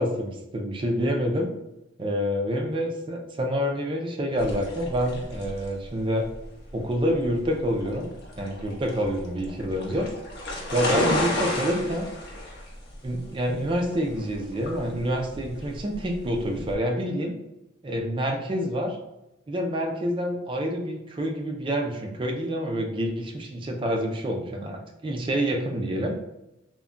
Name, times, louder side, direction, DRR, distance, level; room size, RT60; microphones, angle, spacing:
voice 1, 0.0-1.5 2.0-6.3 6.7-8.1 8.4-10.1 10.7-12.1 13.0-17.3 17.8-19.0 19.5-26.1, equal, 25° right, 2 dB, 0.3 m, -27 dB
sound 1, 4.4-16.7, left 1 dB, 55° left, 0.6 m, -33 dB
2.2 x 2.1 x 3.6 m, 0.94 s
head